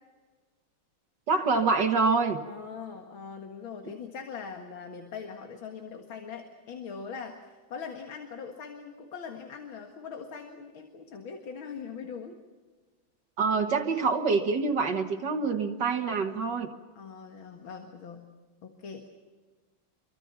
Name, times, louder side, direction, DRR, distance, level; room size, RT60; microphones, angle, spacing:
voice 1, 1.3-2.4 13.4-16.7, right 4 dB, 60° right, 5 dB, 2.0 m, -26 dB
voice 2, 2.5-7.4 7.7-12.4 17.0-18.3 18.6-19.1, left 6 dB, 80° left, 4 dB, 2.6 m, -41 dB
27.0 x 24.0 x 5.9 m, 1.4 s
omnidirectional pair, 2.2 m